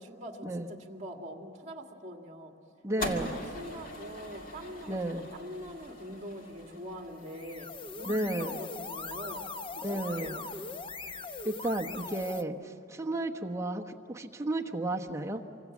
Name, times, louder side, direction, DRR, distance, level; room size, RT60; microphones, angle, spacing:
voice 1, 0.0-2.6 2.9-10.5, equal, 35° right, 2 dB, 2.1 m, -44 dB
voice 2, 2.8-3.3 4.9-5.2 8.0-8.6 9.8-10.4 11.4-15.4, right 1 dB, 15° right, 1 dB, 1.1 m, -33 dB
sound 1, 3.0-9.3, left 1 dB, 45° left, 2.2 m, -42 dB
sound 2, 7.2-12.4, left 4 dB, 25° left, 0.7 m, -41 dB
26.0 x 25.0 x 7.3 m, 2.6 s
head